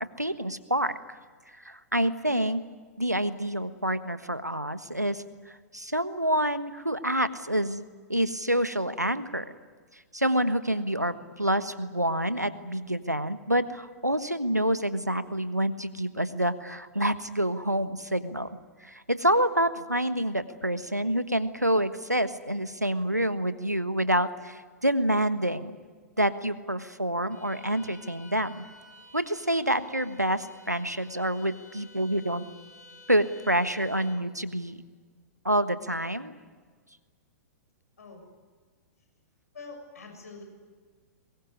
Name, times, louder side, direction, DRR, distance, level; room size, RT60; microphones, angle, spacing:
voice 1, 0.2-1.2 1.6-2.6 3.0-7.8 8.1-9.5 10.1-18.5 18.8-25.7 26.2-28.7 29.1-32.4 33.1-34.8 35.4-36.3, right 1 dB, 90° right, 12 dB, 1.4 m, -27 dB
Bowed string instrument, 27.3-34.3, left 1 dB, 85° left, 4.4 m, -53 dB
voice 2, 39.5-40.4, left 3 dB, 65° left, 4 dB, 6.7 m, -44 dB
23.5 x 21.5 x 9.7 m, 1.5 s
figure-of-eight pair, 110°, 9 cm